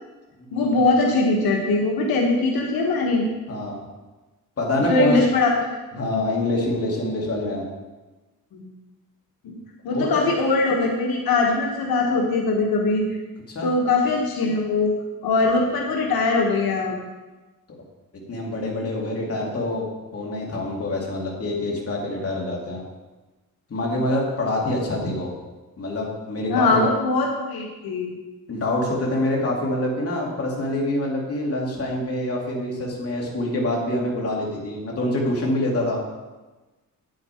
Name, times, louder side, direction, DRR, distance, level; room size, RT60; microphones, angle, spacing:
voice 1, 0.5-3.3 4.9-5.7 6.1-6.2 8.5-8.7 9.4-9.6 9.8-13.1 13.6-14.9 15.2-17.0 26.5-28.1, left 3 dB, 90° left, 0 dB, 1.5 m, -21 dB
voice 2, 4.6-5.1 5.9-7.7 9.9-10.3 13.5-13.7 18.3-19.9 20.1-22.8 23.7-25.3 25.8-26.8 28.5-36.0, left 1 dB, 40° left, -2 dB, 2.6 m, -25 dB
9.6 x 8.7 x 4.4 m, 1.2 s
cardioid pair, 115°, 35 cm